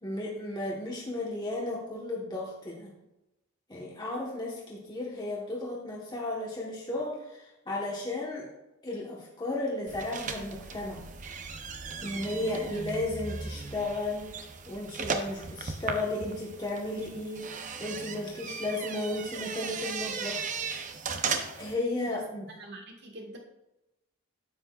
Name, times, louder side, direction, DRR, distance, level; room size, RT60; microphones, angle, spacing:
voice 1, 0.0-2.9 3.7-8.5 8.8-11.1 12.0-14.4 14.7-20.4 21.6-22.5, left 2 dB, 20° left, -4 dB, 1.2 m, -34 dB
sound 1, 9.9-21.7, right 5 dB, 35° right, 0.6 m, -37 dB
voice 2, 22.6-23.4, right 2 dB, 50° right, 1 dB, 1.5 m, -43 dB
9.7 x 8.0 x 2.4 m, 0.94 s
head